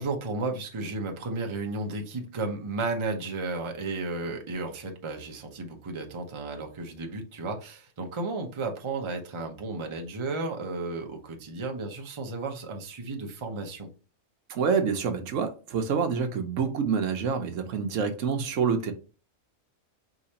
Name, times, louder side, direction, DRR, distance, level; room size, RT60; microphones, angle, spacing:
voice 1, 0.0-13.9, right 3 dB, 30° right, 0.6 m, -33 dB
voice 2, 14.5-18.9, right 6 dB, 75° right, 1.0 m, -27 dB
4.8 x 3.2 x 2.8 m
omnidirectional pair, 1.3 m